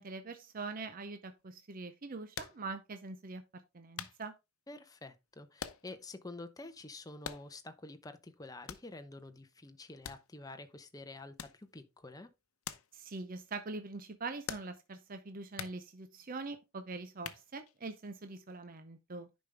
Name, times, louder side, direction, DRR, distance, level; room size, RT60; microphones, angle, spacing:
voice 1, 0.0-4.3 12.9-19.3, right 3 dB, 40° right, 0.6 m, -43 dB
sound 1, 2.3-2.7 3.3-3.4 4.0-4.2 5.6-6.0 6.3-6.4 7.2-7.7 8.7-9.0 10.0-10.6 11.4-11.7 12.6-12.9 13.2-13.3 14.5-14.9 15.6-15.8 17.2-17.8, left 8 dB, 75° left, 0.8 m, -44 dB
voice 2, 4.7-12.3, left 2 dB, 15° left, 0.7 m, -48 dB
10.0 x 5.2 x 3.4 m
head